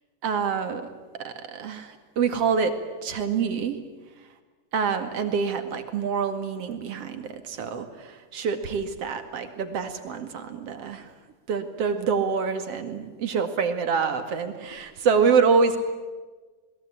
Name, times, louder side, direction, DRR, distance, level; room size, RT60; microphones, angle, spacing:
voice 1, 0.2-0.9 1.2-2.7 3.0-3.8 4.7-11.1 11.5-15.8, right 5 dB, 50° right, 7 dB, 2.9 m, -26 dB
28.0 x 21.0 x 8.7 m, 1.3 s
omnidirectional pair, 3.8 m